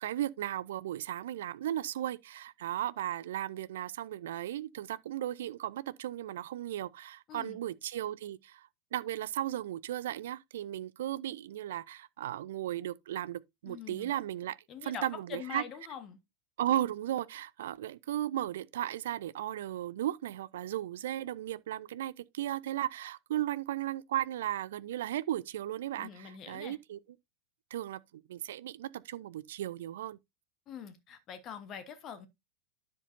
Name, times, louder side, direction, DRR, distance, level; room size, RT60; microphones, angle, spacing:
voice 1, 0.0-14.6 14.8-15.6 16.6-27.0 27.7-30.2, right 12 dB, 60° right, 0.5 m, -36 dB
voice 2, 7.3-7.6 13.6-14.1 14.7-16.2 26.0-26.8 30.7-32.3, left 8 dB, 30° left, 1.2 m, -44 dB
10.0 x 7.5 x 2.7 m
figure-of-eight pair, 90°, 0 cm